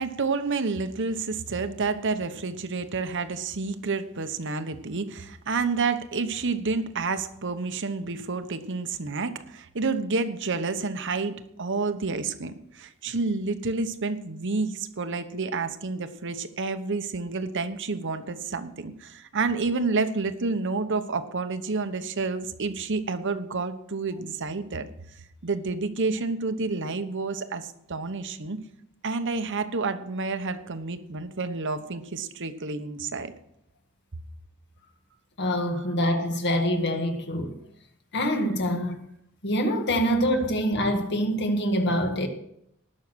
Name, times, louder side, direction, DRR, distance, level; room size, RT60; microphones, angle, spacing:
voice 1, 0.0-24.9 25.4-28.6 29.0-33.3 35.7-35.9, right 4 dB, 60° right, 1.0 m, -29 dB
voice 2, 35.4-37.6 38.1-39.0 39.4-42.3, equal, 55° left, 1.8 m, -25 dB
19.0 x 6.4 x 6.2 m
head